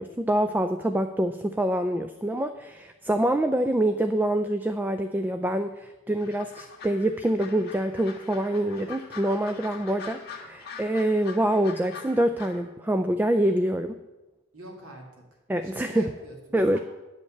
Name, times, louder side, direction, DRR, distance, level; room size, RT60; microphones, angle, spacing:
voice 1, 0.0-14.0 15.5-16.1 16.5-16.8, right 1 dB, 10° right, 8 dB, 0.3 m, -25 dB
sound 1, 6.2-12.6, left 5 dB, 50° left, 1.6 m, -43 dB
voice 2, 14.5-15.2 15.6-16.8, right 1 dB, 80° right, 0 dB, 2.2 m, -45 dB
10.5 x 5.4 x 7.1 m, 1.1 s
head